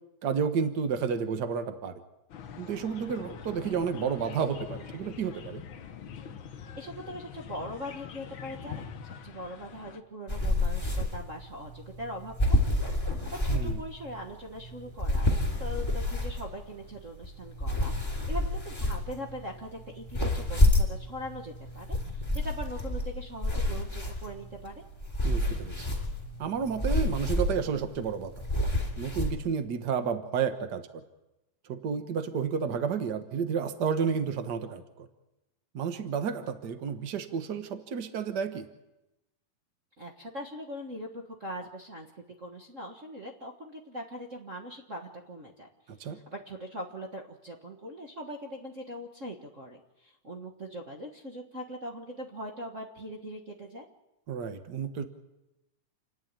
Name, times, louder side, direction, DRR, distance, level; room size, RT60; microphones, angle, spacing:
voice 1, 0.2-2.0 2.6-5.6 13.5-13.8 25.2-25.9 26.4-28.3 29.0-31.0 31.7-35.1 35.7-38.7 45.9-46.2 54.3-55.0, right 6 dB, 90° right, 8 dB, 0.9 m, -31 dB
sound 1, 2.3-10.0, left 7 dB, 80° left, 1.1 m, -44 dB
voice 2, 6.7-12.6 13.2-24.8 40.0-42.1 42.4-45.7 46.0-53.9, equal, 60° right, -1 dB, 0.7 m, -41 dB
sound 2, 10.3-29.3, left 1 dB, 10° left, 3.0 m, -30 dB
29.0 x 10.5 x 8.9 m, 0.96 s
omnidirectional pair, 3.8 m